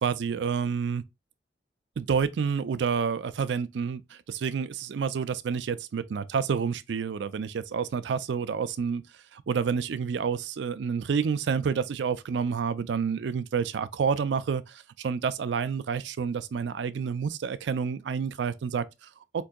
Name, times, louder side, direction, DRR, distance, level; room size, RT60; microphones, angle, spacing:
voice 1, 0.0-1.0 2.0-9.0 9.3-19.4, right 6 dB, 75° right, 0.4 m, -29 dB
4.5 x 2.6 x 2.2 m
head